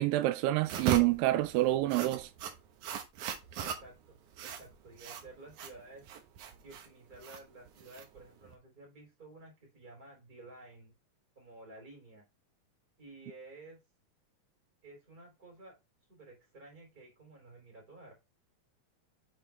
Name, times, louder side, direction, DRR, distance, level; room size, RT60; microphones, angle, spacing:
voice 1, 0.0-2.3, right 16 dB, 85° right, 2.3 m, -27 dB
sound 1, 0.6-8.5, right 8 dB, 70° right, 2.4 m, -39 dB
voice 2, 3.5-4.1 4.4-6.0 6.6-10.9 11.3-12.2 13.0-13.8 14.8-15.7 16.1-18.1, right 2 dB, 25° right, 3.4 m, -53 dB
7.6 x 4.9 x 3.4 m
omnidirectional pair, 3.9 m